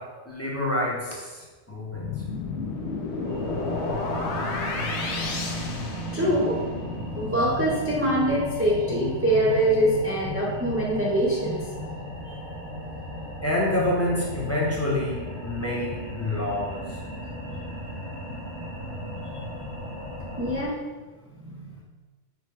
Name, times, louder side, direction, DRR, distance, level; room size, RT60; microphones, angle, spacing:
voice 1, 0.0-2.3 13.4-17.0, left 1 dB, 15° left, -5 dB, 0.7 m, -28 dB
sound 1, 1.9-6.7, left 3 dB, 85° left, 0.9 m, -31 dB
sound 2, 3.2-20.6, left 1 dB, 70° right, 1.3 m, -35 dB
voice 2, 6.1-6.6 7.1-11.9 17.2-17.6 20.4-20.8 21.4-21.7, right 1 dB, 20° right, -5 dB, 0.4 m, -24 dB
4.7 x 2.2 x 4.7 m, 1.3 s
omnidirectional pair, 1.1 m